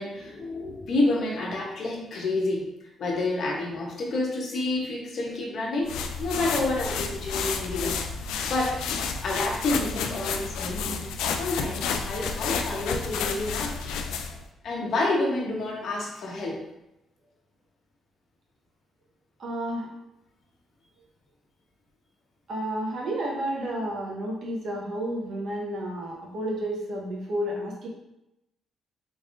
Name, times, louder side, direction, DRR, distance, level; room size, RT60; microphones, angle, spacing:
voice 1, 0.0-2.7 3.0-8.0 8.4-8.8 9.2-11.0 11.4-13.8 14.6-16.6, left 2 dB, 60° left, -1 dB, 1.0 m, -29 dB
sound 1, 5.9-14.4, left 5 dB, 90° left, 0.3 m, -31 dB
voice 2, 19.4-19.9 22.5-27.9, right 1 dB, 65° right, -2 dB, 1.1 m, -31 dB
3.7 x 3.4 x 2.6 m, 0.89 s
cardioid pair, 90°, 0 cm